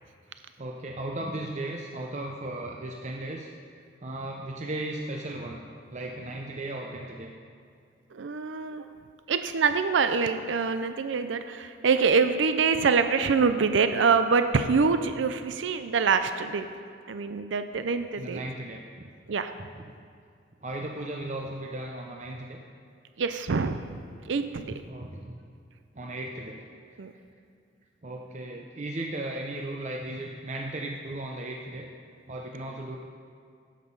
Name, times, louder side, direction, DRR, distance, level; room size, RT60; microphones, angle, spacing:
voice 1, 0.6-3.5 4.0-5.6 5.9-7.3 18.2-19.1 19.6-19.8 20.6-22.6 24.6-25.4 25.9-26.6 28.0-31.9 32.3-33.0, right 1 dB, 35° right, 0 dB, 0.6 m, -36 dB
voice 2, 8.1-8.9 9.3-16.7 17.1-18.4 19.3-19.5 23.2-23.8 24.3-24.7 27.0-27.1, right 5 dB, 80° right, 9 dB, 0.5 m, -25 dB
10.0 x 7.5 x 5.4 m, 2.3 s
head